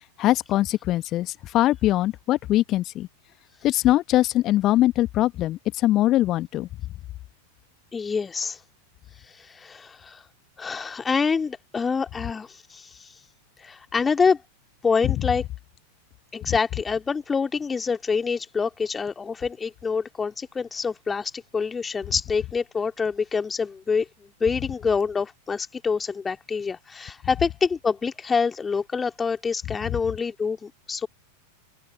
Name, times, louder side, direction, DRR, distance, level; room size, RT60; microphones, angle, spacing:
voice 1, 0.2-3.1 3.6-6.7, left 15 dB, 35° left, 1.3 m, -22 dB
voice 2, 7.9-8.6 9.3-10.2 10.6-13.1 13.6-14.4 14.8-15.4 16.3-24.1 24.4-31.1, left 5 dB, 15° left, 2.1 m, -26 dB
open air
figure-of-eight pair, 90°, 0 cm